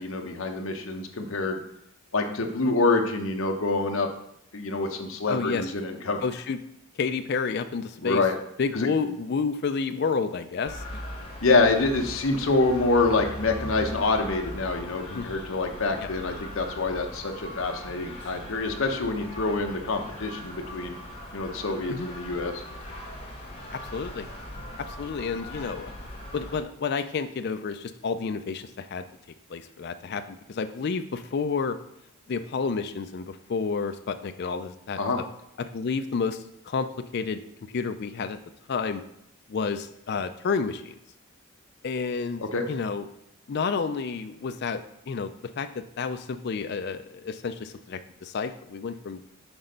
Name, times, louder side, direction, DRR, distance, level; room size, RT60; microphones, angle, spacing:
voice 1, 0.0-1.6 2.1-4.1 4.5-6.2 8.0-8.3 8.7-8.9 11.4-20.9 21.3-22.6 35.0-35.2 42.4-42.6, left 3 dB, 65° left, 4 dB, 0.8 m, -26 dB
voice 2, 5.3-5.7 6.2-6.6 7.0-8.2 8.6-11.0 15.1-15.3 16.0-16.1 21.9-22.1 23.7-24.3 24.9-25.9 26.3-29.0 29.5-31.8 32.3-35.0 35.6-36.9 37.1-37.4 37.7-38.4 38.7-39.0 39.5-41.0 41.8-43.0 43.5-49.2, left 5 dB, 50° left, 9 dB, 0.4 m, -30 dB
sound 1, 10.7-26.6, left 1 dB, 25° left, 1.3 m, -40 dB
6.1 x 4.3 x 5.1 m, 0.77 s
head